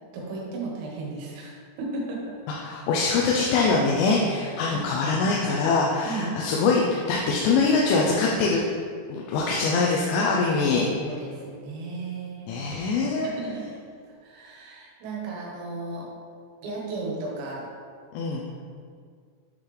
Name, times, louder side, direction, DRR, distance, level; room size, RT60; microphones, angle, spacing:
voice 1, 0.1-2.2 4.7-4.9 6.1-6.3 10.8-12.6 13.2-13.6 14.2-16.1 16.6-17.7, right 3 dB, 85° right, -3 dB, 3.9 m, -35 dB
voice 2, 2.6-6.8 7.1-8.6 9.1-10.9 12.5-13.3 18.1-18.4, left 4 dB, 85° left, -3 dB, 3.0 m, -23 dB
9.7 x 3.9 x 3.2 m, 2.1 s
omnidirectional pair, 5.9 m